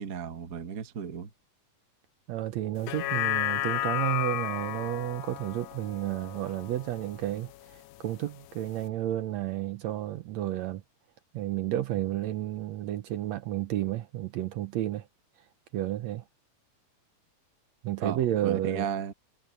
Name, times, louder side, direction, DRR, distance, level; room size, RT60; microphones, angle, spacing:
voice 1, 0.0-1.3 18.0-19.1, right 7 dB, 50° right, 1.0 m, -34 dB
voice 2, 2.3-10.8 11.3-15.1 15.7-16.2 17.8-18.9, right 13 dB, 70° right, 1.8 m, -31 dB
sound 1, 2.8-7.3 7.7-7.8, left 14 dB, 80° left, 2.0 m, -32 dB
omnidirectional pair, 3.6 m